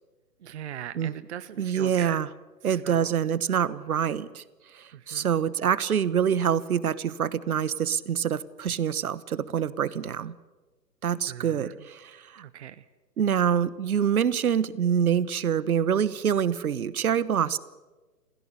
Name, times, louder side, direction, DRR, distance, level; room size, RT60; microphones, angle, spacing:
voice 1, 0.4-2.2 2.6-3.1 4.9-5.3 11.3-11.8 12.4-12.8, right 10 dB, 45° right, 13 dB, 0.9 m, -40 dB
voice 2, 1.6-2.3 2.6-4.4 4.7-10.3 11.0-12.4 13.2-17.6, right 8 dB, 60° right, 18 dB, 1.2 m, -26 dB
25.5 x 16.5 x 9.8 m, 1.2 s
hypercardioid pair, 140°, 48 cm